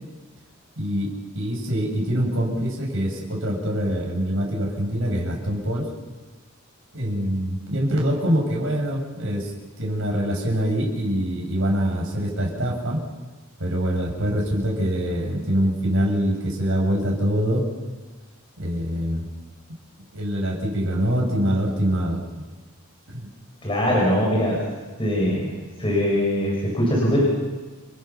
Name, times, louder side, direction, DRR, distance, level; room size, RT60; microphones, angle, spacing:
voice 1, 0.8-5.9 6.9-9.5 9.8-13.0 13.6-17.6 18.6-19.3 20.0-22.2 23.1-23.3, equal, 60° right, -1 dB, 7.4 m, -24 dB
voice 2, 23.6-24.6 25.0-25.5 25.8-27.2, equal, 25° left, -4 dB, 6.8 m, -21 dB
29.5 x 22.0 x 6.0 m, 1.3 s
head